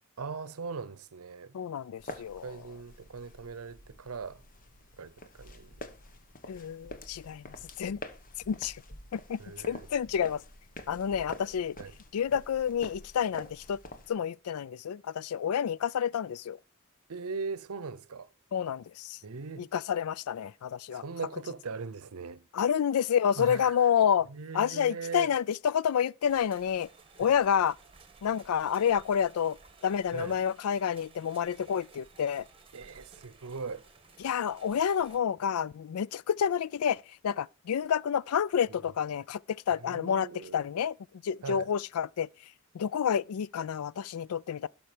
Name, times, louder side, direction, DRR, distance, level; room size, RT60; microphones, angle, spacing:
voice 1, 0.2-1.5 2.1-4.4 5.0-5.8 9.4-9.9 11.8-12.0 17.1-18.3 19.2-19.7 20.9-22.5 23.4-23.8 24.3-25.3 30.1-30.4 32.7-33.8 38.7-38.9 39.7-40.7 41.4-41.7, right 4 dB, 85° right, 0.7 m, -40 dB
voice 2, 1.5-2.5 6.5-8.0 8.5-8.8 9.1-9.4 9.7-10.4 10.9-11.8 12.1-13.8 14.1-16.6 18.5-19.2 19.6-21.0 22.5-24.3 24.5-26.9 27.2-27.8 28.2-29.6 29.8-32.5 34.2-39.4 39.7-40.3 40.5-41.0 41.2-42.3 42.7-44.7, left 8 dB, 85° left, 0.4 m, -29 dB
sound 1, 2.0-14.1, left 2 dB, 40° left, 1.1 m, -47 dB
sound 2, 26.2-35.2, right 4 dB, 25° right, 1.5 m, -56 dB
12.0 x 5.8 x 5.0 m
head